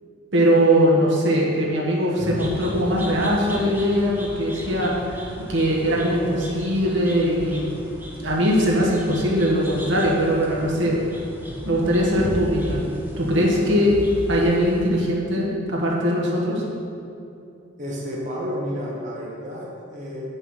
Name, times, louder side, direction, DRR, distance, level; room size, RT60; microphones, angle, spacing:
voice 1, 0.3-5.2 5.5-7.7 8.2-11.0 11.6-12.9 13.2-14.0 14.3-16.6, equal, 65° right, -3 dB, 1.4 m, -21 dB
sound 1, 2.2-14.9, equal, 10° right, 0.9 m, -36 dB
voice 2, 17.8-20.3, equal, 35° right, -4 dB, 1.2 m, -31 dB
8.2 x 5.5 x 5.6 m, 2.6 s
head